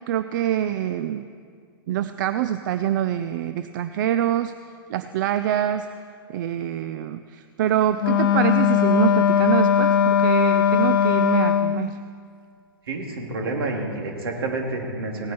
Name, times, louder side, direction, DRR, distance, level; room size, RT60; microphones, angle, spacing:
voice 1, 0.1-1.3 1.9-4.5 4.9-5.9 6.3-12.0, right 11 dB, 55° right, 11 dB, 0.5 m, -25 dB
Wind instrument woodwind instrument, 8.0-11.9, left 8 dB, 65° left, 0.8 m, -19 dB
voice 2, 12.9-15.3, right 2 dB, 70° right, 1 dB, 2.6 m, -29 dB
17.5 x 9.3 x 4.3 m, 2.2 s
hypercardioid pair, 110°, 13 cm